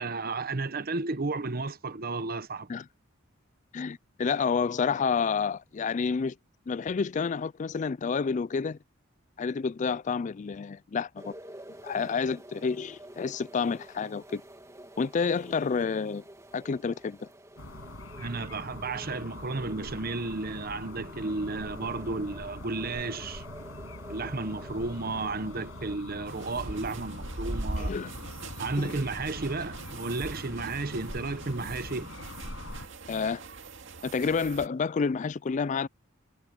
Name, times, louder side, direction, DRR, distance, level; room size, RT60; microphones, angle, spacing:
voice 1, 0.0-2.7 18.2-23.4 24.1-27.9 28.6-32.1, right 3 dB, 45° right, 1.0 m, -33 dB
voice 2, 3.7-6.4 6.7-8.8 9.4-11.3 11.8-14.4 15.0-16.2 16.5-17.3 27.8-28.1 28.8-28.9 33.1-33.4 34.0-35.9, left 5 dB, 35° left, 0.3 m, -29 dB
sound 1, 11.2-26.0, right 1 dB, 15° right, 2.5 m, -49 dB
sound 2, 17.6-32.9, left 1 dB, 75° left, 6.7 m, -44 dB
sound 3, 26.3-34.7, right 2 dB, 65° right, 2.3 m, -40 dB
head